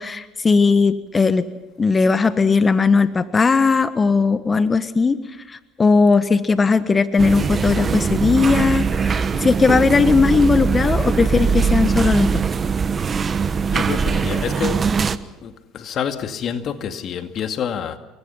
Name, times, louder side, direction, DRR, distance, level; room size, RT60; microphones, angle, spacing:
voice 1, 0.0-1.5 1.8-5.2 5.5-12.3, left 4 dB, 25° left, 1.4 m, -18 dB
sound 1, 7.2-15.2, right 5 dB, 35° right, 1.2 m, -21 dB
voice 2, 13.7-15.0 15.4-18.0, left 8 dB, 50° left, 2.2 m, -27 dB
29.0 x 23.0 x 5.8 m
hypercardioid pair, 75°, 0 cm